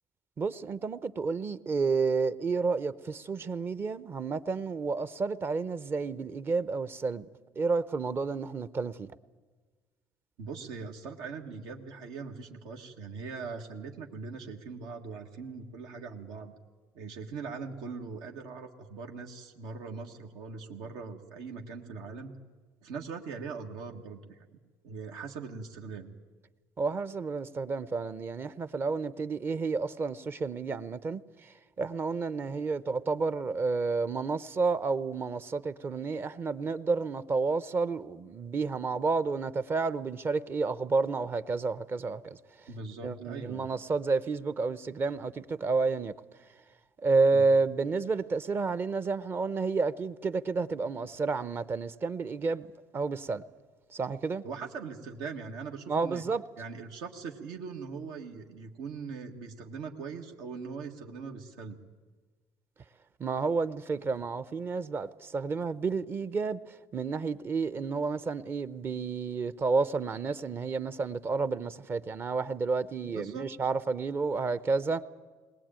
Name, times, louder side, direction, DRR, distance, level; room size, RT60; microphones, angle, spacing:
voice 1, 0.4-7.2 7.6-9.1 26.8-42.4 43.0-46.1 47.0-52.7 52.9-53.4 53.9-54.4 55.9-56.4 63.2-75.0, right 4 dB, 30° right, 0.7 m, -30 dB
voice 2, 10.4-16.5 16.9-22.3 22.8-24.4 24.8-26.1 42.7-43.7 47.3-47.5 54.4-56.2 56.6-61.8 73.1-73.5, right 5 dB, 85° right, 1.7 m, -41 dB
20.5 x 19.0 x 8.9 m
cardioid pair, 120°, 7 cm